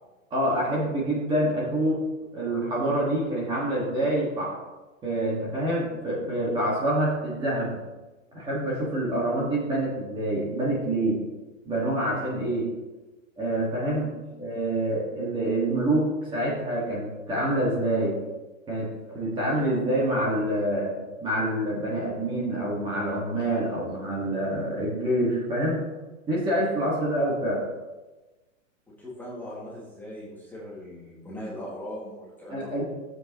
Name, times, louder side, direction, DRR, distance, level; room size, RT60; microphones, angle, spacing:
voice 1, 0.3-2.0 2.3-4.5 5.0-7.8 8.3-11.2 11.6-12.7 13.4-14.1 14.4-18.2 18.7-20.9 21.2-25.8 26.3-27.6 32.5-32.8, right 1 dB, 10° right, -5 dB, 1.5 m, -26 dB
voice 2, 29.0-32.8, equal, 5° left, -6 dB, 1.6 m, -39 dB
15.0 x 7.7 x 2.9 m, 1.2 s
hypercardioid pair, 160°, 40 cm